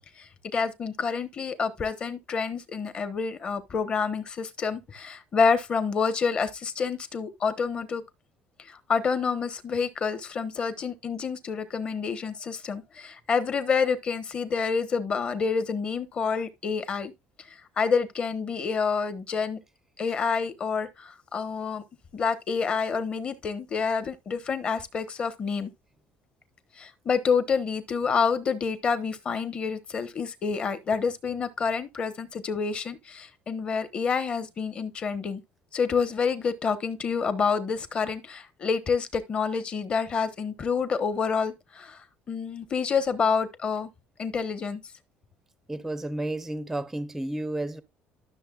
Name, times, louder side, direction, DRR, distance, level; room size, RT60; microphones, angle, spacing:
voice 1, 0.2-8.0 8.6-17.1 17.5-19.6 20.0-21.8 22.1-25.7 26.8-35.4 35.7-43.9 44.2-44.8, left 5 dB, 25° left, 1.0 m, -28 dB
voice 2, 45.7-47.8, right 1 dB, 5° right, 0.6 m, -31 dB
13.0 x 6.6 x 2.4 m
cardioid pair, 170°, 4 cm